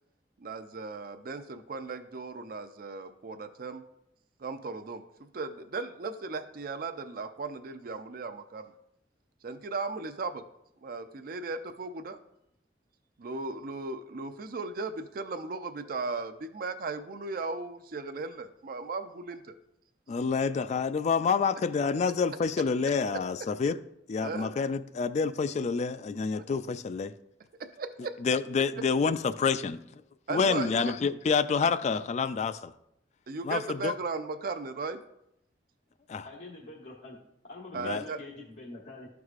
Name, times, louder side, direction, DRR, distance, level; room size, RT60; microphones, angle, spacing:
voice 1, 0.4-3.8 4.4-8.7 9.4-10.4 10.8-12.2 13.2-19.5 24.2-24.5 26.3-26.4 27.6-28.1 30.3-30.8 33.3-35.0 37.7-38.2, right 3 dB, 55° right, 8 dB, 0.5 m, -37 dB
voice 2, 20.1-23.8 24.1-27.1 28.2-29.8 30.3-32.7 33.4-33.9 36.1-36.3 37.8-38.0, left 5 dB, 40° left, 13 dB, 0.3 m, -28 dB
voice 3, 36.2-37.2 37.4-39.1, left 2 dB, 90° left, -6 dB, 1.4 m, -45 dB
12.5 x 4.7 x 2.4 m, 0.80 s
head